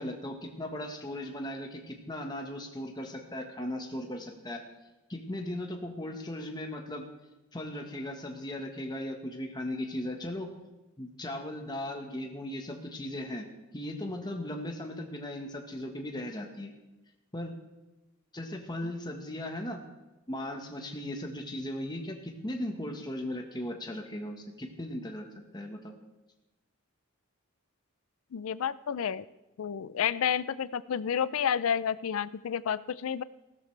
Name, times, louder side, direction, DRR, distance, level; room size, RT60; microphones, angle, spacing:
voice 1, 0.0-4.6 5.1-7.1 7.5-10.5 11.0-13.5 13.7-16.7 17.3-17.6 18.3-19.8 20.3-25.9, left 1 dB, 20° left, 3 dB, 1.3 m, -37 dB
voice 2, 28.3-29.2 29.6-33.2, left 8 dB, 80° left, 18 dB, 0.4 m, -30 dB
15.5 x 13.5 x 3.3 m, 1.1 s
head